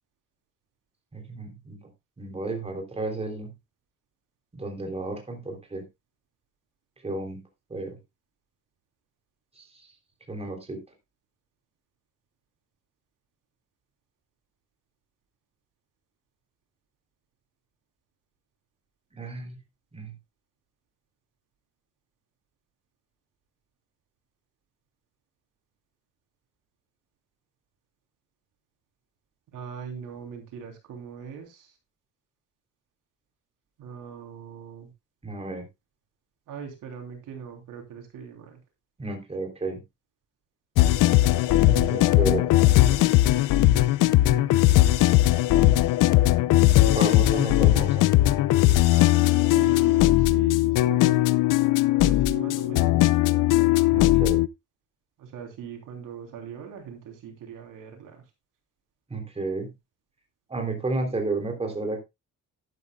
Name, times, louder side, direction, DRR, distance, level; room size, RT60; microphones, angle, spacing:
voice 1, 1.1-1.8 2.2-3.5 4.5-5.8 7.0-7.4 7.7-7.9 9.6-9.7 10.3-10.8 19.1-19.6 19.9-20.1 35.2-35.6 39.0-39.8 41.6-42.4 46.9-48.1 53.9-54.4 59.1-59.7 60.5-62.0, right 2 dB, 20° right, 3 dB, 3.3 m, -32 dB
voice 2, 29.5-31.7 33.8-34.9 36.5-38.6 42.2-42.3 42.6-44.7 48.9-51.3 52.0-53.2 55.2-58.2, right 7 dB, 85° right, 3 dB, 3.5 m, -41 dB
sound 1, 40.8-54.5, left 15 dB, 85° left, 0.6 m, -19 dB
12.0 x 11.0 x 2.3 m, 0.22 s
cardioid pair, 130°, 31 cm